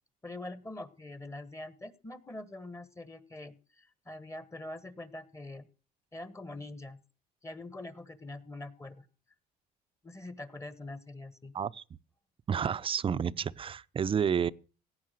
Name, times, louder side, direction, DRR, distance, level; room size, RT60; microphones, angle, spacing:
voice 1, 0.2-5.7 6.1-7.0 7.4-9.1 10.0-11.5, left 2 dB, 15° left, 1.3 m, -44 dB
voice 2, 12.5-14.5, right 7 dB, 30° right, 0.6 m, -30 dB
17.5 x 8.4 x 6.5 m
cardioid pair, 110°, 17 cm